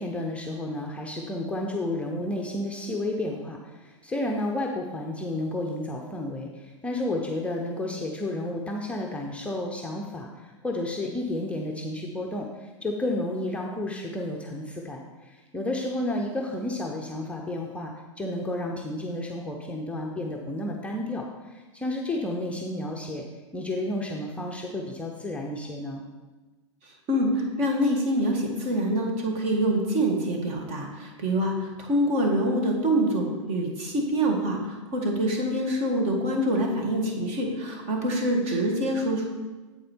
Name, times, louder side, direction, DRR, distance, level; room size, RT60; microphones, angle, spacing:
voice 1, 0.0-23.2 23.5-26.0, left 1 dB, 5° left, 0 dB, 0.6 m, -31 dB
voice 2, 27.1-39.2, right 1 dB, 40° right, 1 dB, 1.6 m, -25 dB
7.9 x 4.9 x 4.4 m, 1.2 s
hypercardioid pair, 120°, 16 cm